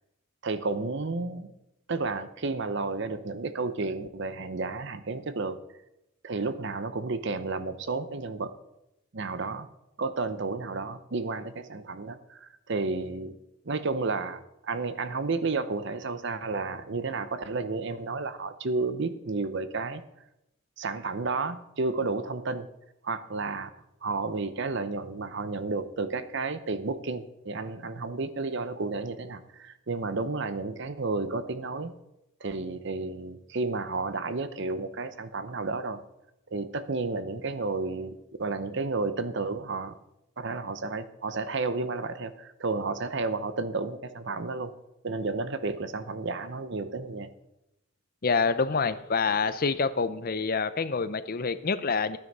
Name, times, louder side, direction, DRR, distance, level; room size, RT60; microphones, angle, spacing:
voice 1, 0.4-1.5 1.9-5.6 6.2-8.5 9.1-9.7 10.0-13.4 13.6-20.0 20.8-22.7 23.0-23.7 24.0-31.9 32.4-36.0 36.5-40.0 40.4-44.7 45.0-47.3, right 3 dB, 60° right, 12 dB, 0.8 m, -32 dB
voice 2, 48.2-52.2, left 4 dB, 45° left, 13 dB, 0.6 m, -27 dB
12.0 x 9.5 x 5.4 m, 0.86 s
head